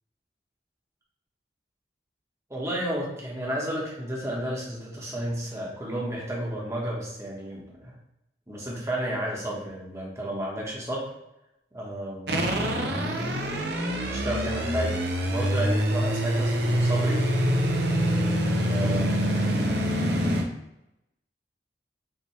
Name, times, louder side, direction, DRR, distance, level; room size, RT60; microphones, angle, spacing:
voice 1, 2.5-7.9 8.5-11.1 11.7-12.5 14.1-17.2 18.7-19.2, right 1 dB, 15° right, -3 dB, 1.2 m, -32 dB
sound 1, 12.3-20.4, equal, 70° right, 0.8 m, -25 dB
5.6 x 3.0 x 3.2 m, 0.87 s
head